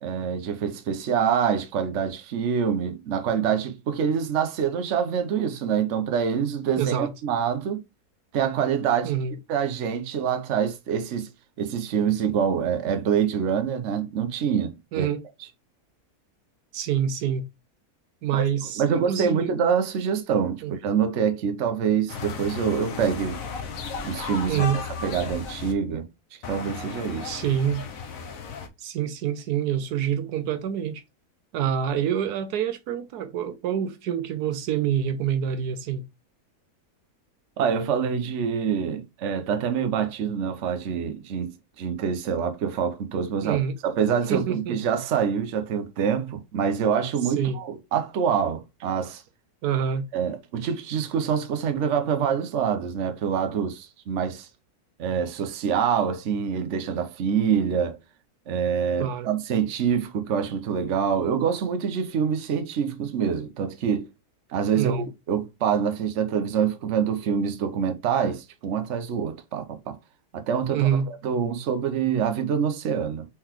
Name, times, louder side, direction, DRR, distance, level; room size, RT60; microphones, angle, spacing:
voice 1, 0.0-7.8 8.3-9.1 9.5-11.3 11.6-15.1 18.3-18.4 18.8-23.4 24.0-26.1 26.5-27.4 37.6-49.2 50.1-54.5 55.0-58.0 58.5-64.1 64.5-69.9 70.3-70.9 71.2-73.3, right 7 dB, 55° right, 1.0 m, -26 dB
voice 2, 6.8-7.1 9.0-9.4 14.9-15.2 16.7-17.4 18.2-19.6 20.6-20.7 24.5-24.8 27.2-27.8 28.8-31.0 31.5-36.1 43.4-43.7 44.3-44.8 47.2-47.6 49.6-50.1 59.0-59.3 64.7-65.1 70.7-71.1, right 9 dB, 80° right, 1.2 m, -26 dB
sound 1, 22.1-25.7 26.4-28.7, left 5 dB, 65° left, 1.1 m, -35 dB
4.4 x 3.9 x 2.9 m
omnidirectional pair, 1.7 m